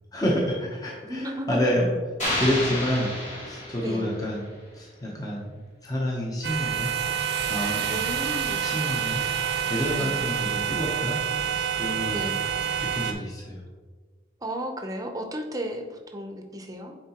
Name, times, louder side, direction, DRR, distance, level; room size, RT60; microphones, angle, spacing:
voice 1, 0.1-1.9 2.4-3.2 3.4-6.9 7.5-8.2 8.6-9.2 9.7-11.2 11.5-12.4 12.8-13.6, equal, 20° left, -3 dB, 0.8 m, -29 dB
voice 2, 1.0-1.7 3.8-4.2 7.9-8.6 10.0-10.2 12.1-12.4 14.4-17.0, equal, 20° right, 4 dB, 0.6 m, -34 dB
sound 1, 2.2-4.4, left 1 dB, 40° left, 1.7 m, -30 dB
sound 2, 6.4-13.1, right 8 dB, 65° right, 0.6 m, -28 dB
9.3 x 3.9 x 2.9 m, 1.4 s
head